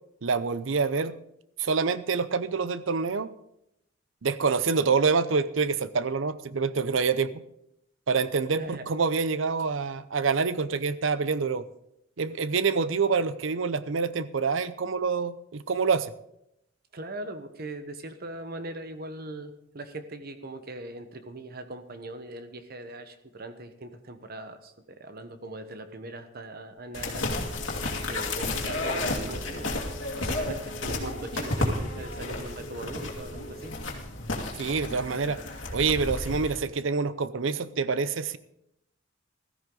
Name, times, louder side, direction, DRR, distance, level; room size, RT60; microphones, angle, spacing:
voice 1, 0.2-1.1 1.6-3.3 4.2-7.4 8.1-11.7 12.2-16.1 34.6-35.4 35.7-38.4, right 5 dB, 90° right, 15 dB, 0.7 m, -26 dB
voice 2, 8.6-8.9 16.9-29.8 30.1-33.7, right 2 dB, 55° right, 9 dB, 1.1 m, -40 dB
Telephone, 26.7-34.1, right 1 dB, 25° right, 2.7 m, -46 dB
sound 1, 26.9-36.6, left 2 dB, 80° left, 2.4 m, -32 dB
15.5 x 13.5 x 3.9 m, 0.80 s
head